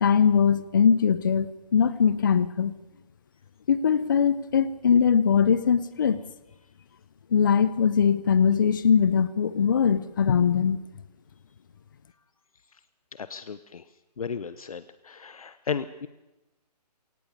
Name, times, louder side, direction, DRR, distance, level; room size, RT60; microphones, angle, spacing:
voice 1, 0.0-2.7 3.7-6.2 7.3-10.8, left 7 dB, 30° left, 16 dB, 0.6 m, -21 dB
voice 2, 13.2-13.8 14.2-16.1, left 6 dB, 60° left, 14 dB, 1.0 m, -34 dB
22.5 x 18.0 x 6.8 m, 1.0 s
hypercardioid pair, 165°, 21 cm